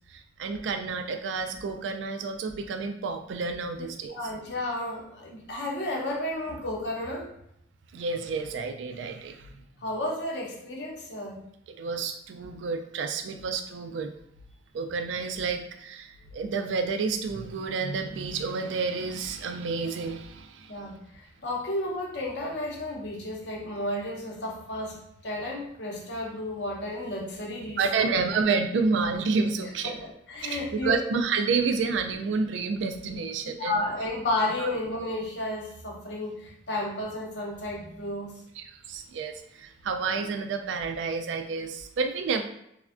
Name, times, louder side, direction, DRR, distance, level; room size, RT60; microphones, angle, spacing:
voice 1, 0.1-4.2 7.9-9.6 11.7-14.1 14.7-20.8 27.8-30.0 30.4-33.8 34.6-34.7 38.6-42.4, right 4 dB, 85° right, 6 dB, 0.3 m, -30 dB
voice 2, 3.8-7.3 9.8-11.4 20.7-28.2 29.8-30.9 33.1-33.2 33.6-38.4, left 1 dB, 70° left, -1 dB, 0.7 m, -32 dB
3.3 x 2.1 x 2.4 m, 0.76 s
head